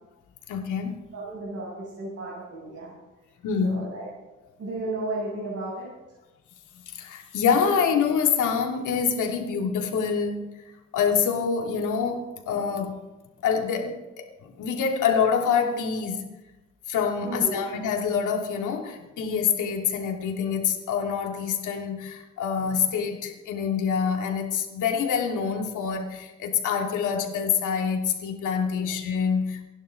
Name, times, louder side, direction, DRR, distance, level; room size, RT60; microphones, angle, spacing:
voice 1, 0.5-1.0 3.4-3.8 6.9-10.6 10.9-13.0 13.4-16.2 16.9-29.6, left 6 dB, 80° left, 2 dB, 3.0 m, -26 dB
voice 2, 1.1-2.9 3.6-4.1 4.6-5.9 17.2-17.6 28.7-28.9, right 2 dB, 50° right, -7 dB, 7.0 m, -33 dB
29.0 x 11.5 x 4.0 m, 1.0 s
cardioid pair, 90°, 30 cm